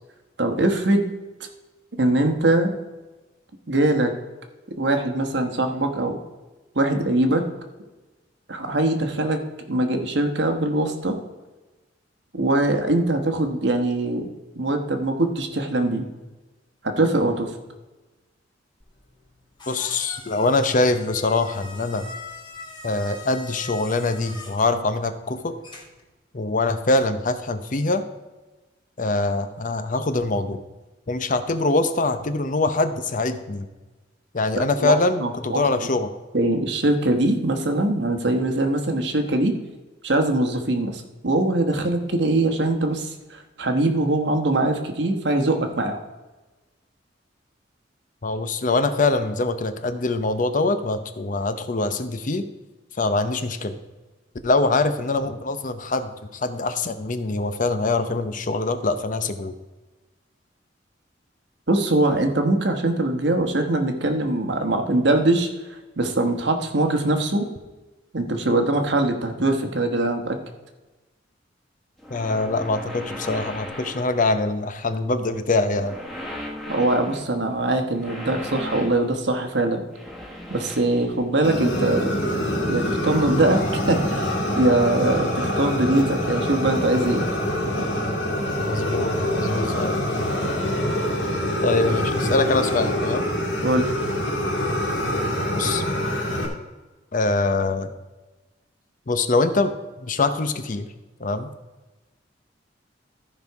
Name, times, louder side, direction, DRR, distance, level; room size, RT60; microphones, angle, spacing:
voice 1, 0.4-1.0 2.0-2.7 3.7-4.1 4.8-6.2 6.7-7.4 8.5-9.4 9.7-11.2 12.3-14.3 14.6-16.1 16.8-17.5 34.8-34.9 35.2-35.6 36.3-39.5 40.0-46.0 61.7-65.5 66.0-67.5 68.1-70.4 76.7-79.8 80.5-82.1 82.7-87.3 87.8-87.9 93.6-93.9, right 2 dB, 65° right, 5 dB, 1.3 m, -22 dB
sound 1, 18.8-26.1, left 2 dB, 25° left, 1.5 m, -42 dB
voice 2, 19.7-22.1 22.8-25.5 26.3-28.0 29.0-30.6 31.1-33.7 34.3-36.1 48.2-52.4 53.0-53.8 54.4-59.5 72.1-76.0 88.7-90.0 91.6-93.2 95.5-95.8 97.1-97.9 99.1-100.9 101.2-101.5, left 3 dB, 45° left, 10 dB, 0.7 m, -23 dB
sound 2, 72.0-74.6 75.7-77.3 77.9-79.1 79.9-81.4 82.8-82.9 84.6-84.7 86.3-87.0, left 1 dB, ahead, 1.4 m, -37 dB
Fire, 81.4-96.5, equal, 80° left, 2.4 m, -25 dB
14.0 x 5.4 x 4.7 m, 1.2 s
head